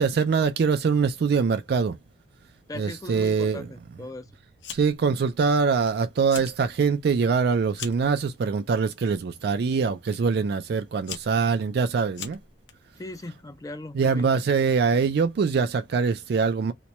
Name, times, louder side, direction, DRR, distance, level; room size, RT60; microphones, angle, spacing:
voice 1, 0.0-2.0 2.8-3.7 4.7-12.4 13.9-16.7, right 5 dB, 60° right, 0.3 m, -23 dB
voice 2, 2.7-4.3 13.0-14.3, left 2 dB, 20° left, 0.4 m, -38 dB
Fire, 4.6-5.1 5.4-5.9 6.2-6.6 7.0-8.1 8.9-9.2 10.1-10.2 10.8-12.7, left 7 dB, 75° left, 0.8 m, -40 dB
2.9 x 2.2 x 4.0 m
head